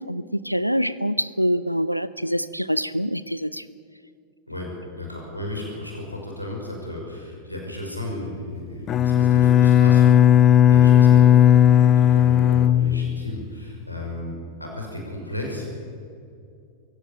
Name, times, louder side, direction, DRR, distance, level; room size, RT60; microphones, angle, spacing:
voice 1, 0.0-3.7, equal, 90° right, 16 dB, 0.5 m, -25 dB
voice 2, 4.5-14.3 14.6-15.7, left 1 dB, 90° left, 0 dB, 5.8 m, -34 dB
Bowed string instrument, 8.9-13.6, left 10 dB, 30° left, 0.7 m, -15 dB
24.0 x 16.5 x 8.9 m, 2.4 s
figure-of-eight pair, 90°, 0 cm